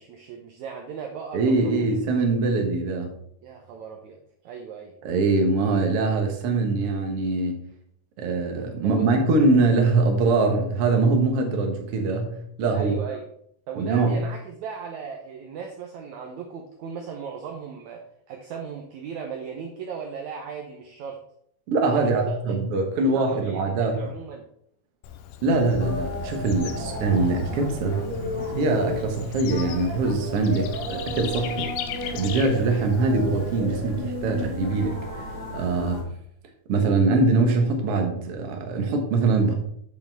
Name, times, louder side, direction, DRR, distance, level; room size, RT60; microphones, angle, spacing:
voice 1, 0.0-2.0 3.4-4.9 8.8-9.1 12.7-13.3 13.7-18.0 18.3-21.2 21.9-24.5, right 6 dB, 80° right, 1 dB, 1.7 m, -37 dB
voice 2, 1.3-3.2 5.0-7.6 8.2-13.0 13.8-14.2 21.7-24.0 25.4-28.0 28.6-31.7 32.1-35.2 35.5-36.1 36.7-39.5, right 3 dB, 60° right, 3 dB, 1.5 m, -23 dB
Bird / Insect, 25.0-33.6, left 10 dB, 85° left, 2.0 m, -39 dB
sound 1, 25.8-36.0, equal, 20° left, 1.7 m, -33 dB
8.5 x 7.2 x 3.5 m, 0.69 s
omnidirectional pair, 4.4 m